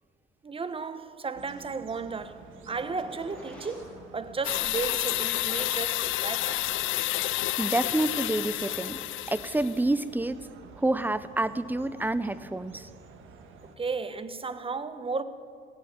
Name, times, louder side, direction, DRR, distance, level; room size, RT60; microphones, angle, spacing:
voice 1, 0.4-6.7 13.8-15.2, right 4 dB, 25° right, 0.9 m, -34 dB
sound 1, 1.3-13.8, right 5 dB, 80° right, 1.5 m, -50 dB
sound 2, 2.7-4.0, equal, 5° left, 4.8 m, -46 dB
sound 3, 4.4-9.8, left 16 dB, 80° left, 0.4 m, -30 dB
voice 2, 7.6-9.0 9.3-10.5 10.8-12.9, right 2 dB, 10° right, 0.6 m, -28 dB
17.0 x 7.9 x 9.0 m
cardioid pair, 90°, 20 cm